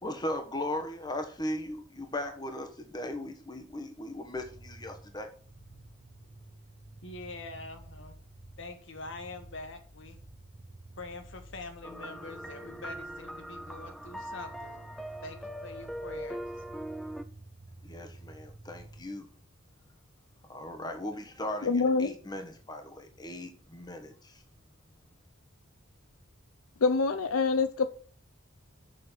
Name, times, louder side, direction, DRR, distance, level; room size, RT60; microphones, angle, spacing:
voice 1, 0.0-5.3 17.8-19.3 20.5-24.4, left 1 dB, 20° left, 1.3 m, -38 dB
sound 1, 4.3-19.0, right 2 dB, 50° right, 2.0 m, -51 dB
voice 2, 7.0-8.2 8.6-10.2 11.0-16.4, left 3 dB, 60° left, 1.6 m, -45 dB
sound 2, 11.8-17.2, equal, ahead, 0.5 m, -41 dB
voice 3, 21.6-22.1 26.8-27.9, left 4 dB, 85° left, 0.7 m, -25 dB
6.7 x 6.4 x 7.2 m
head